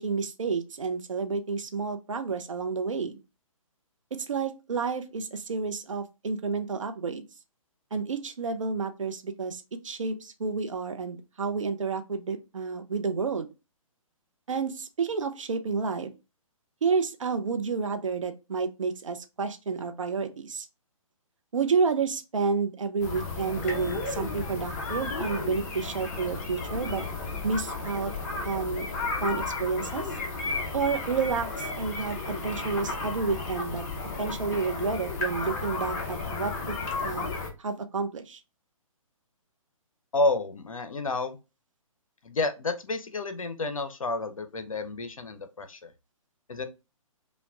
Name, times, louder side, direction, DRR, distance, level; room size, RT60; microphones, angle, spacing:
voice 1, 0.0-3.2 4.1-7.3 7.9-13.5 14.5-16.1 16.8-20.7 21.5-27.0 27.4-28.1 28.4-28.9 29.2-30.1 30.7-33.8 34.2-37.3 37.6-38.4, right 5 dB, 65° right, 0.6 m, -30 dB
sound 1, 23.0-37.5, left 3 dB, 25° left, 0.7 m, -33 dB
voice 2, 40.1-41.4 42.2-45.9 46.5-46.7, left 2 dB, 75° left, 0.6 m, -30 dB
5.2 x 2.2 x 2.3 m
figure-of-eight pair, 130°, 18 cm